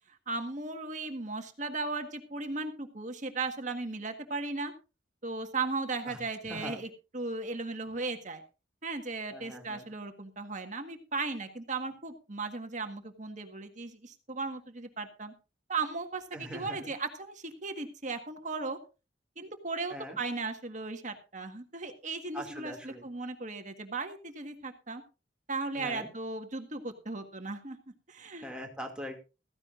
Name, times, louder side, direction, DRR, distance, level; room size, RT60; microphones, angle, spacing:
voice 1, 0.3-4.7 5.2-8.4 8.8-15.3 15.7-18.8 19.4-25.0 25.5-27.8 28.1-28.5, right 3 dB, 40° right, 6 dB, 1.6 m, -36 dB
voice 2, 6.1-6.8 9.3-9.9 16.3-16.8 19.9-20.2 22.3-23.0 25.7-26.1 28.4-29.2, equal, 5° right, 1 dB, 2.5 m, -42 dB
15.5 x 15.0 x 2.6 m, 0.30 s
head